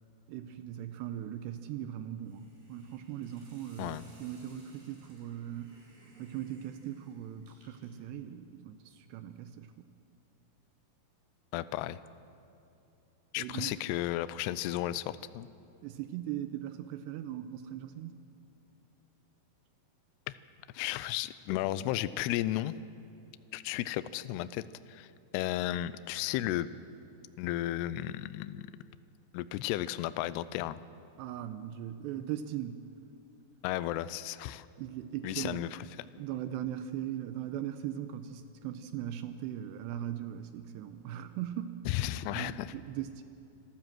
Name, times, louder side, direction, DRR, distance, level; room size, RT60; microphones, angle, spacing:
voice 1, 0.3-5.7 6.2-9.9 13.4-13.7 15.8-18.2 31.2-32.8 34.8-35.6 36.2-43.2, right 11 dB, 80° right, 9 dB, 2.7 m, -39 dB
Hiss, 2.2-8.0, right 2 dB, 65° right, 6.8 m, -61 dB
voice 2, 11.5-12.0 13.3-15.5 20.3-20.4 20.7-22.7 23.5-24.6 24.9-25.1 25.3-26.7 27.4-28.7 29.3-30.8 33.6-34.7 35.2-35.8 41.9-42.7, left 14 dB, 85° left, 15 dB, 2.4 m, -34 dB
27.0 x 13.5 x 7.6 m, 2.8 s
omnidirectional pair, 5.3 m